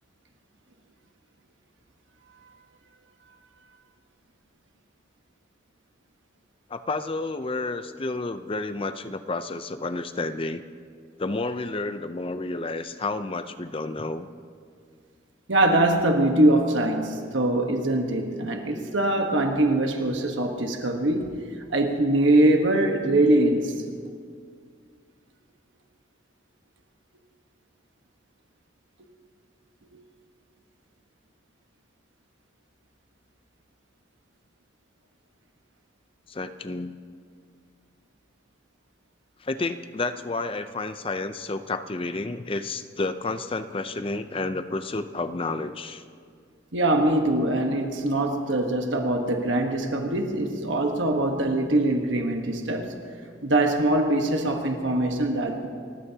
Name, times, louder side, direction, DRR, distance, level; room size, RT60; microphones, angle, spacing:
voice 1, 6.7-10.6 11.2-14.3 36.3-36.9 39.4-46.0, left 3 dB, 25° left, 10 dB, 0.5 m, -30 dB
voice 2, 15.5-21.4 21.7-23.7 29.9-30.0 46.7-53.0 53.4-55.7, right 1 dB, 70° right, 3 dB, 1.3 m, -23 dB
29.5 x 15.5 x 2.8 m, 2.1 s
head